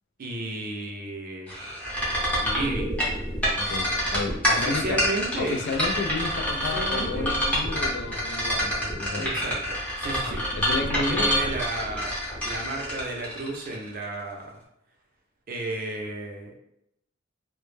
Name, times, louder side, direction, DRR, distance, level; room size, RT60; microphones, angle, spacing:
voice 1, 0.2-1.5 2.4-2.9 4.5-5.6 6.7-7.3 9.2-10.4 10.9-12.2 12.5-14.6 15.5-16.6, right 2 dB, 45° right, 0 dB, 0.5 m, -33 dB
sound 1, 1.5-14.0, equal, 5° left, 0.7 m, -27 dB
voice 2, 3.5-5.0 5.4-9.3 10.5-11.3, left 3 dB, 60° left, 5 dB, 0.3 m, -32 dB
2.1 x 2.0 x 3.1 m, 0.78 s
head